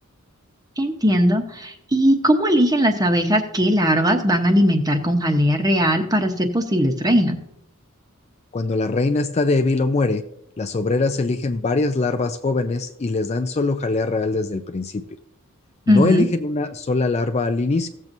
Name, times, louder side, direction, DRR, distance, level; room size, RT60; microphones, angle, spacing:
voice 1, 0.8-7.4 15.9-16.2, equal, 15° right, 5 dB, 0.9 m, -19 dB
voice 2, 8.5-10.2 10.6-15.0 15.9-17.9, left 3 dB, 30° left, 8 dB, 0.4 m, -22 dB
16.0 x 7.4 x 2.7 m, 0.74 s
head